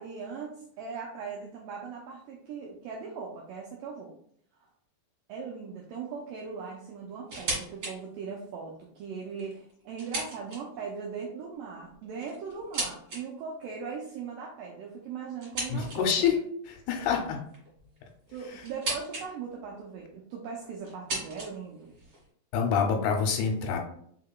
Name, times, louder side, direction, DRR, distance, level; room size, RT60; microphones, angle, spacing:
voice 1, 0.0-4.1 5.3-16.1 18.3-22.0, right 5 dB, 85° right, -2 dB, 1.9 m, -39 dB
sound 1, 7.3-8.0 8.3-8.4 9.2-10.9 11.9-13.2 15.4-16.2 17.5-19.3 19.5-20.1 20.8-22.3, right 2 dB, 45° right, 1.8 m, -37 dB
voice 2, 15.7-17.4 18.5-18.6 22.5-23.8, left 6 dB, 80° left, 4 dB, 2.6 m, -27 dB
5.6 x 3.7 x 2.3 m, 0.65 s
omnidirectional pair, 4.6 m